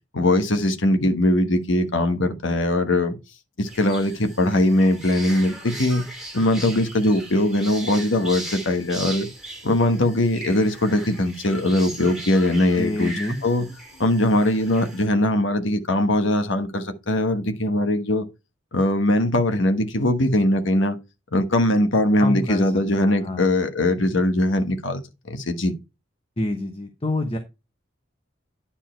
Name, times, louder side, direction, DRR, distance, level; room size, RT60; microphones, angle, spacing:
voice 1, 0.1-3.2 3.6-6.0 6.3-9.3 9.6-13.1 13.4-13.7 14.0-18.2 18.7-21.0 21.3-25.0 25.3-25.7, left 1 dB, 70° left, 1.3 m, -21 dB
sound 1, 3.6-15.1, right 1 dB, ahead, 2.7 m, -38 dB
voice 2, 12.8-13.4 22.2-22.7 23.0-23.5 26.4-27.4, left 1 dB, 30° left, 1.0 m, -27 dB
9.9 x 4.5 x 4.4 m
head